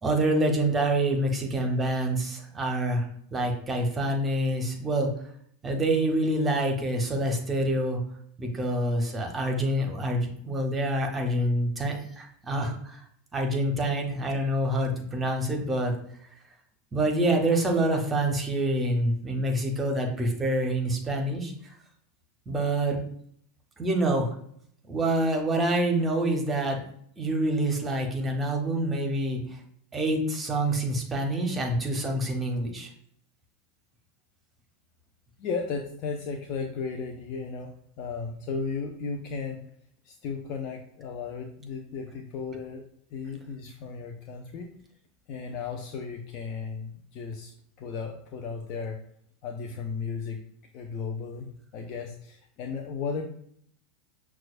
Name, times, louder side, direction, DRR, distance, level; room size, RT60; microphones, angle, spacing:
voice 1, 0.0-5.1 5.6-8.0 8.4-13.0 13.3-15.9 16.9-21.5 22.5-23.0 23.8-24.3 24.9-26.8 27.2-29.4 29.9-32.9, right 1 dB, 20° right, 2 dB, 0.9 m, -26 dB
voice 2, 35.4-39.6 40.0-42.8 43.1-44.7 45.3-47.5 47.8-49.0 49.4-50.4 50.7-53.2, left 5 dB, 50° left, 2 dB, 0.5 m, -35 dB
5.9 x 2.3 x 2.5 m, 0.67 s
figure-of-eight pair, 85°, 0 cm